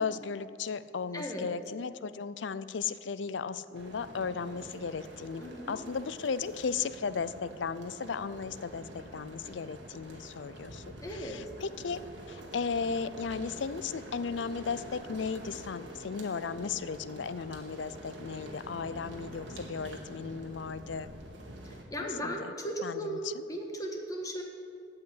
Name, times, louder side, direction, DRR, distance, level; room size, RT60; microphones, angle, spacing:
voice 1, 0.0-12.0 12.3-21.1 22.0-22.5 22.8-23.4, left 5 dB, 80° left, 14 dB, 0.5 m, -36 dB
voice 2, 1.1-1.5 5.4-5.8 11.0-11.4 21.6-24.4, right 1 dB, 20° left, 1 dB, 1.5 m, -37 dB
sound 1, 3.7-21.8, right 1 dB, 85° right, 2.0 m, -46 dB
16.0 x 5.8 x 9.8 m, 2.4 s
head